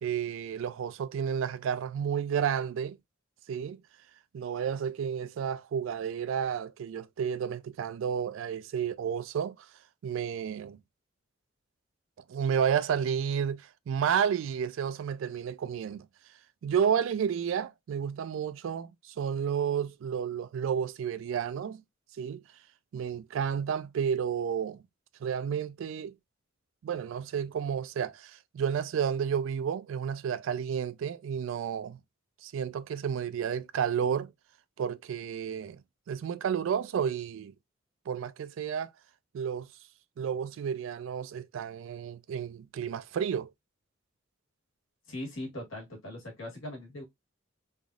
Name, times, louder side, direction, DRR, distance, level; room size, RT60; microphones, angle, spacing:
voice 1, 0.0-3.0 3.5-3.8 4.3-9.6 10.0-10.8 12.3-16.1 16.6-21.8 22.2-22.4 22.9-24.8 25.2-26.1 26.8-32.0 32.4-34.3 34.8-35.8 36.1-37.5 38.1-38.9 39.3-39.7 40.2-43.5, right 7 dB, 70° right, 0.3 m, -31 dB
voice 2, 45.1-47.0, left 1 dB, 80° left, 1.5 m, -40 dB
3.3 x 2.6 x 2.3 m
head